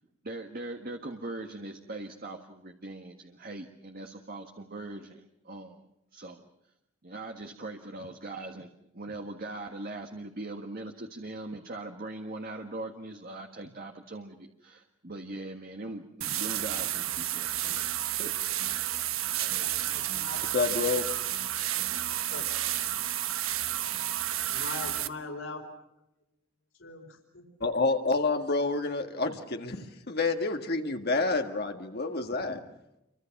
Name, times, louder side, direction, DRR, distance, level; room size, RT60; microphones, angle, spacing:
voice 1, 0.2-5.8 6.1-6.4 7.0-17.8 18.2-18.3, right 2 dB, 45° right, 4 dB, 1.6 m, -41 dB
sound 1, 16.2-25.1, right 12 dB, 80° right, 1.2 m, -31 dB
voice 2, 19.4-20.5 22.3-22.6 23.2-23.3 24.5-25.9 26.8-27.4, left 3 dB, 65° left, 3 dB, 4.4 m, -42 dB
voice 3, 20.5-21.0 27.6-32.6, left 3 dB, 50° left, 4 dB, 1.8 m, -28 dB
28.5 x 24.5 x 6.0 m, 0.85 s
head